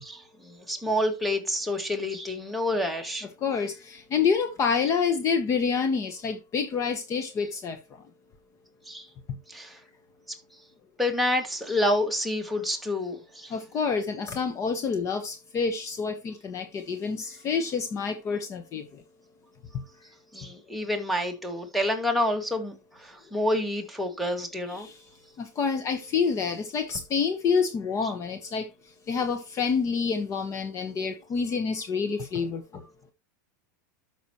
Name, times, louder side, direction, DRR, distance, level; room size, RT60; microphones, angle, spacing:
voice 1, 0.0-3.3 8.9-9.1 9.5-9.8 10.3-10.4 11.0-13.5 20.3-24.9, left 1 dB, ahead, 2.0 m, -28 dB
voice 2, 3.4-7.8 13.5-19.0 24.7-24.9 25.4-28.7 29.1-32.8, left 5 dB, 30° left, 1.3 m, -28 dB
12.5 x 6.2 x 3.0 m
supercardioid pair, 130°, 10 cm